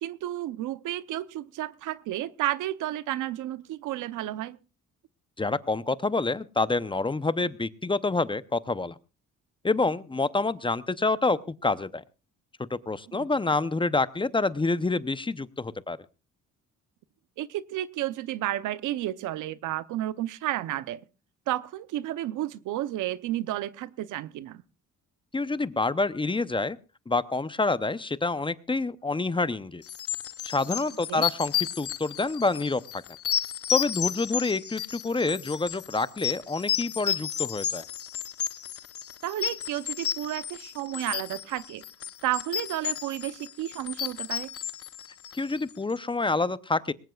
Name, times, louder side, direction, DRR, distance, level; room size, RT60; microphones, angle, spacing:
voice 1, 0.0-4.6 17.4-21.0 21.5-24.6 31.1-31.2 39.2-41.8 42.2-44.5, right 14 dB, 85° right, 16 dB, 0.8 m, -32 dB
voice 2, 5.4-8.9 9.6-12.0 12.7-16.0 25.3-26.8 27.1-29.8 30.4-32.8 33.7-37.8 45.3-46.9, left 3 dB, 15° left, 15 dB, 0.7 m, -27 dB
sound 1, 29.9-45.7, left 9 dB, 50° left, 0.8 m, -32 dB
20.5 x 18.0 x 2.4 m, 0.31 s
cardioid pair, 90°, 30 cm